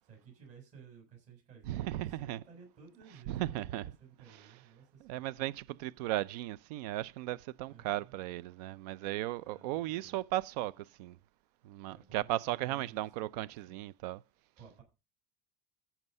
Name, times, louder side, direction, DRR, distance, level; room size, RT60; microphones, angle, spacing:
voice 1, 0.0-5.3 7.7-8.1 9.4-10.2 11.9-13.1 13.4-13.8 14.6-14.8, right 6 dB, 35° right, 7.4 m, -56 dB
voice 2, 1.7-2.4 3.3-3.9 5.0-11.2 11.6-14.2, right 14 dB, 85° right, 0.5 m, -36 dB
15.5 x 6.0 x 5.4 m
cardioid pair, 175°, 20 cm